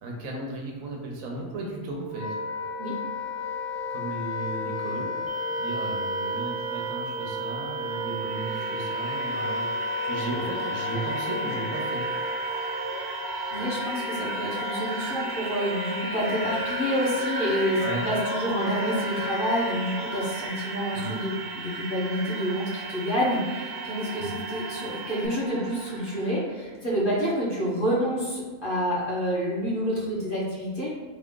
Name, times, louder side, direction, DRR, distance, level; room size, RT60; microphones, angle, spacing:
voice 1, 0.0-2.3 3.9-5.1 5.6-9.7 10.1-12.0 17.8-18.0 20.9-21.1 24.2-24.3, right 2 dB, 80° right, -1 dB, 1.2 m, -35 dB
Wind instrument woodwind instrument, 1.6-20.5, left 1 dB, 90° left, 1.2 m, -33 dB
sound 1, 5.3-25.3, right 12 dB, 65° right, 0.9 m, -43 dB
sound 2, 7.8-26.4, right 2 dB, 35° right, 0.3 m, -36 dB
voice 2, 13.5-30.9, equal, 45° left, -6 dB, 1.0 m, -28 dB
3.7 x 2.4 x 3.6 m, 1.4 s
omnidirectional pair, 1.4 m